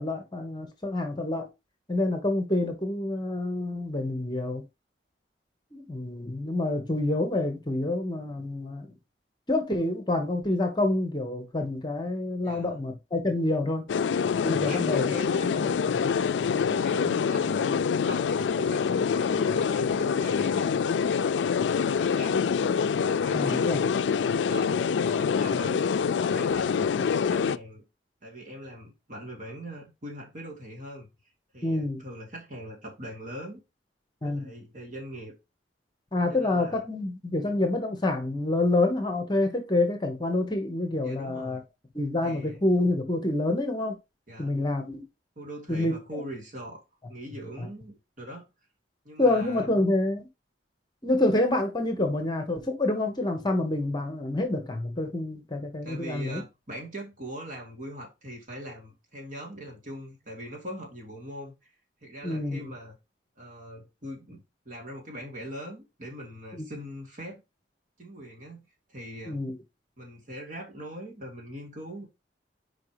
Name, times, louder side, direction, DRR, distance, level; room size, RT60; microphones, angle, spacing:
voice 1, 0.0-1.5 1.9-4.6 5.7-8.9 9.5-13.8 14.4-15.3 15.6-16.2 23.3-23.8 31.6-32.0 34.2-34.5 36.1-41.6 41.9-44.0 44.4-45.0 45.7-46.2 47.6-47.7 49.2-50.3 51.0-56.4 62.2-62.7 66.6-66.7 69.3-69.5, left 2 dB, 25° left, 1.2 m, -27 dB
voice 2, 12.4-12.8 14.7-15.8 16.5-20.8 21.8-22.6 23.1-23.8 24.3-25.9 26.2-27.8 28.2-31.1 31.5-33.6 34.2-35.3 36.3-36.9 41.0-41.6 42.2-42.6 44.3-44.6 45.4-46.8 47.1-48.5 49.0-49.7 55.8-61.5 62.0-63.0 63.4-67.4 68.0-69.4 70.0-72.1, equal, 45° right, 2.5 m, -41 dB
sound 1, 13.9-27.6, left 6 dB, 85° left, 0.3 m, -25 dB
5.0 x 4.7 x 4.9 m
head